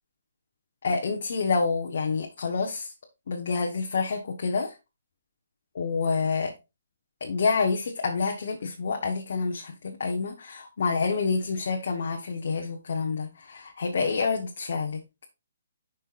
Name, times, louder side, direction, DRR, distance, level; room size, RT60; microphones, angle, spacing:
voice 1, 0.8-2.9 3.3-4.7 5.7-6.5 7.2-15.2, left 4 dB, 45° left, 1.1 m, -28 dB
10.5 x 5.5 x 2.5 m
hypercardioid pair, 180°, 0 cm